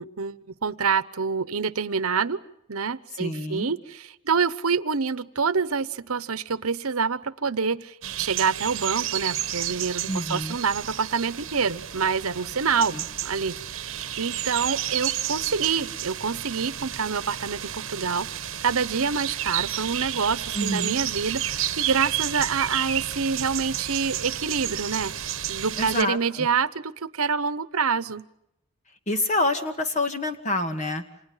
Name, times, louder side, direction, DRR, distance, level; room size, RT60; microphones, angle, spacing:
voice 1, 0.0-2.4 2.7-13.0 13.2-25.1 25.5-28.2, right 5 dB, 80° right, 16 dB, 1.0 m, -27 dB
voice 2, 3.2-3.7 10.1-10.6 12.9-13.1 20.5-21.0 25.8-26.5 29.1-31.0, left 1 dB, 30° left, 7 dB, 2.2 m, -27 dB
sound 1, 8.0-26.0, right 11 dB, 60° right, 1.4 m, -31 dB
29.5 x 27.0 x 5.7 m, 0.80 s
head